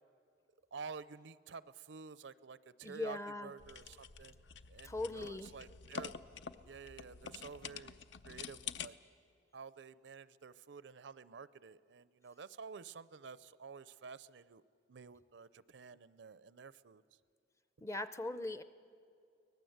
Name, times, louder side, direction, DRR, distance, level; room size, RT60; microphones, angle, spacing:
voice 1, 0.7-4.4 4.7-6.1 6.6-9.0 9.5-14.6 14.9-17.0, right 5 dB, 70° right, 17 dB, 0.5 m, -51 dB
voice 2, 2.8-3.5 4.8-5.5 17.8-18.6, left 2 dB, 15° left, 13 dB, 0.5 m, -40 dB
sound 1, 3.6-8.9, left 6 dB, 70° left, 0.6 m, -48 dB
24.0 x 18.5 x 7.9 m, 2.4 s
head